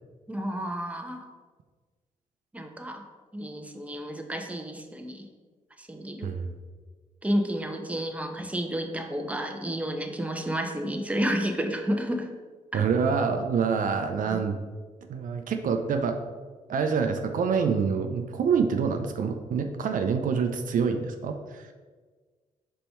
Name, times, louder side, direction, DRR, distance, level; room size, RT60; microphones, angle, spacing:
voice 1, 0.3-1.3 2.5-3.0 3.3-5.3 5.8-6.3 7.2-12.3 12.7-12.8, equal, 10° right, 3 dB, 0.9 m, -31 dB
voice 2, 12.7-14.6 15.1-16.2 16.7-21.7, right 6 dB, 70° right, 5 dB, 0.6 m, -26 dB
5.3 x 4.3 x 4.4 m, 1.4 s
cardioid pair, 65°, 14 cm